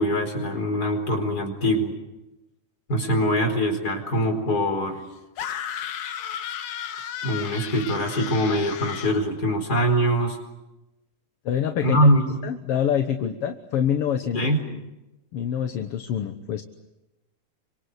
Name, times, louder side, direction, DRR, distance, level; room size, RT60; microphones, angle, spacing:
voice 1, 0.0-1.9 2.9-5.0 7.2-10.4 11.8-12.4 13.2-13.3 14.3-14.6, equal, 30° left, 3 dB, 4.9 m, -23 dB
sound 1, 5.4-9.2, left 9 dB, 75° left, 2.7 m, -34 dB
voice 2, 11.5-12.0 12.4-14.4 14.7-14.8 15.3-16.6, left 9 dB, 60° left, 6 dB, 1.9 m, -26 dB
28.0 x 25.5 x 8.2 m, 1.0 s
omnidirectional pair, 3.4 m